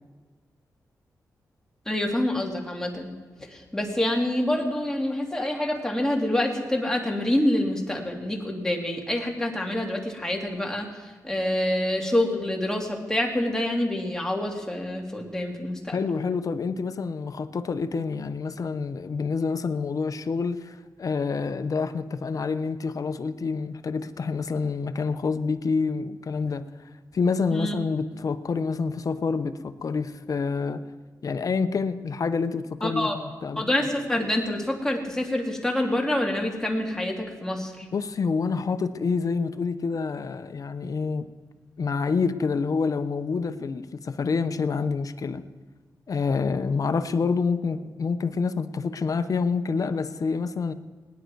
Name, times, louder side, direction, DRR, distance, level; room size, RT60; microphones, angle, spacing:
voice 1, 1.9-3.1 3.4-16.1 27.5-27.8 32.8-33.2 33.6-37.9, left 1 dB, 10° left, 2.5 m, -27 dB
voice 2, 15.9-26.7 27.1-30.8 31.2-33.7 37.9-41.3 41.8-45.4 46.1-50.7, left 4 dB, 55° left, 0.8 m, -27 dB
19.0 x 10.5 x 4.6 m
cardioid pair, 75°, 7 cm